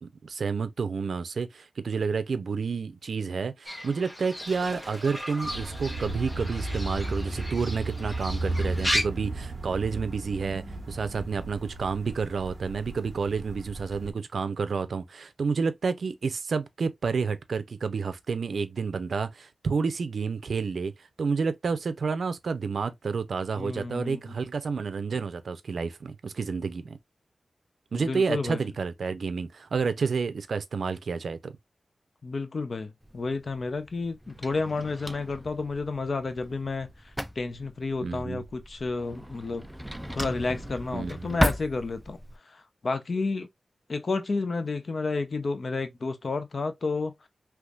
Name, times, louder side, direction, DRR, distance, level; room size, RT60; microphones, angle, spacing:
voice 1, 0.0-20.9 21.2-27.0 27.9-31.5 38.0-38.4 40.9-41.4, right 5 dB, 75° right, 0.5 m, -30 dB
Fowl / Bird, 3.7-9.0, equal, 20° left, 1.2 m, -35 dB
sound 1, 5.4-14.1, right 2 dB, 40° right, 1.2 m, -34 dB
voice 2, 23.6-24.3 27.9-28.6 32.2-36.9 37.4-39.7 40.1-42.2 42.5-43.5 43.9-47.1, left 3 dB, 50° left, 0.6 m, -31 dB
Drawer open or close, 33.0-42.4, equal, 5° right, 0.4 m, -36 dB
3.5 x 3.0 x 2.4 m
wide cardioid pair, 130°, 0 cm